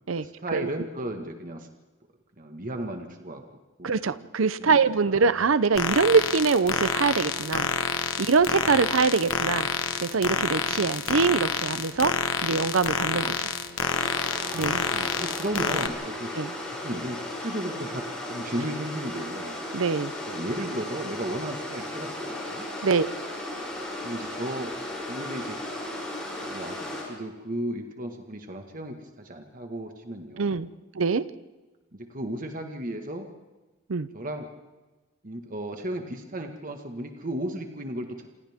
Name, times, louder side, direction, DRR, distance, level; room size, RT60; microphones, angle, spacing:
voice 1, 0.1-1.7 2.4-3.4 3.8-4.3 4.6-4.8 5.1-5.4 8.6-8.8 10.7-10.9 14.4-14.6 14.9-16.3 16.8-19.5 20.3-22.7 24.0-24.7 25.1-25.6 26.4-26.8 27.1-30.6 31.9-33.3 34.1-34.5 35.2-38.3, right 1 dB, 45° right, 4 dB, 1.7 m, -35 dB
voice 2, 3.8-7.7 8.2-9.7 10.0-12.1 12.4-13.4 14.5-14.9 16.3-16.5 19.7-20.1 22.8-23.1 30.4-30.7 31.0-31.2 33.9-34.1, right 5 dB, 85° right, 15 dB, 0.7 m, -23 dB
sound 1, 5.8-15.9, left 6 dB, 80° left, 1.4 m, -28 dB
sound 2, 13.8-27.0, left 1 dB, 5° left, 7.2 m, -35 dB
28.0 x 27.0 x 3.6 m, 1.2 s
head